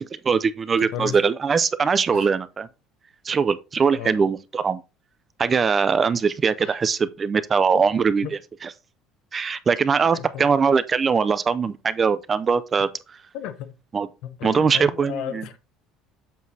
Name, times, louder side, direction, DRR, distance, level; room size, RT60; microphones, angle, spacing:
voice 1, 0.0-2.7 3.2-4.8 5.4-8.3 8.6-8.7 9.3-12.9 13.9-14.1 14.4-15.4, right 5 dB, 20° right, 0.4 m, -21 dB
voice 2, 0.8-1.2 2.1-2.3 3.9-4.2 6.6-6.8 7.7-7.8 8.2-8.3 10.1-10.5 13.3-13.8 14.2-15.6, left 10 dB, 65° left, 0.7 m, -34 dB
7.3 x 5.9 x 2.7 m
cardioid pair, 155°, 0 cm